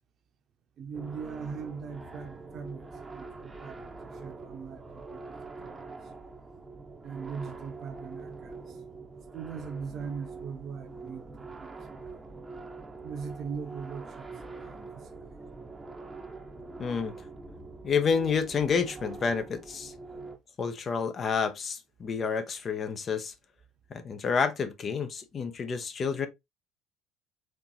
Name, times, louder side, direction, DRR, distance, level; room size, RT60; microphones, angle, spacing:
voice 1, 0.8-6.0 7.0-8.8 9.3-12.2 13.0-14.3 14.6-15.4, right 6 dB, 50° right, 0.8 m, -41 dB
sound 1, 0.9-20.4, right 3 dB, 20° right, 0.7 m, -44 dB
voice 2, 16.8-17.1 17.8-19.9 20.6-23.3 23.9-26.3, left 6 dB, 40° left, 0.6 m, -29 dB
4.3 x 3.0 x 2.6 m
hypercardioid pair, 65°, 0 cm